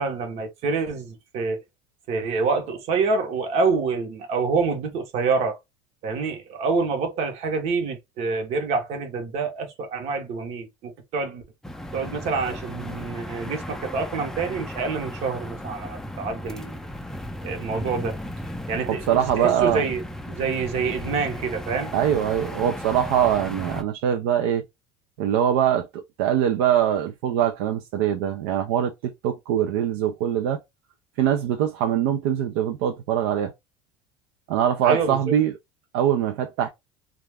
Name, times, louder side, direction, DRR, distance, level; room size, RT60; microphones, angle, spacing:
voice 1, 0.0-1.6 2.1-5.6 6.0-11.4 11.9-16.7 17.4-18.2 18.7-20.0 20.3-21.9 34.8-35.3, right 4 dB, 60° right, 0.9 m, -27 dB
sound 1, 11.6-23.8, left 1 dB, 5° left, 0.4 m, -35 dB
voice 2, 18.9-19.8 21.9-24.6 25.2-25.9 26.2-30.6 31.2-33.5 34.5-35.5 35.9-36.7, right 10 dB, 85° right, 0.4 m, -23 dB
2.4 x 2.2 x 3.3 m
supercardioid pair, 120°, 12 cm